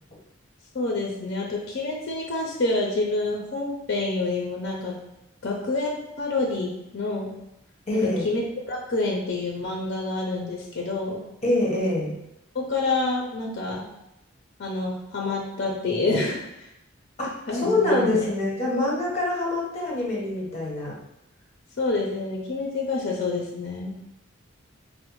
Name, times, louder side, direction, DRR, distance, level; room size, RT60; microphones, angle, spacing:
voice 1, 0.7-5.0 5.4-6.7 6.9-7.3 7.9-11.2 12.5-13.9 14.6-16.7 17.5-18.3 21.8-23.9, left 2 dB, 55° left, -1 dB, 0.5 m, -27 dB
voice 2, 7.9-8.3 11.4-12.1 17.2-21.0, left 2 dB, 35° left, -4 dB, 1.0 m, -25 dB
4.1 x 2.1 x 3.0 m, 0.85 s
head